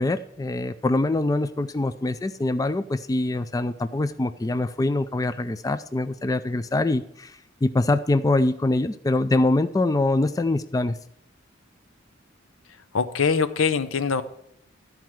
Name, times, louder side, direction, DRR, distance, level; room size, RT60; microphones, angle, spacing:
voice 1, 0.0-11.0, left 2 dB, 20° left, 11 dB, 0.3 m, -24 dB
voice 2, 12.9-14.2, left 5 dB, 85° left, 12 dB, 0.7 m, -23 dB
12.5 x 4.6 x 7.6 m, 0.73 s
head